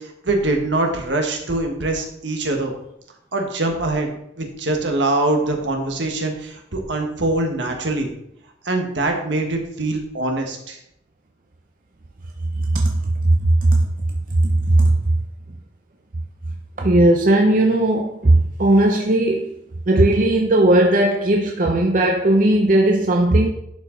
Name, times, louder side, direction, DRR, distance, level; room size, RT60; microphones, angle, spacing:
voice 1, 0.0-2.7 3.3-8.1 8.6-10.8, right 2 dB, 70° right, 1.4 m, -23 dB
voice 2, 12.7-13.9 14.4-15.0 16.8-19.5 19.9-23.5, right 1 dB, 45° right, 0.6 m, -17 dB
11.0 x 5.0 x 3.8 m
head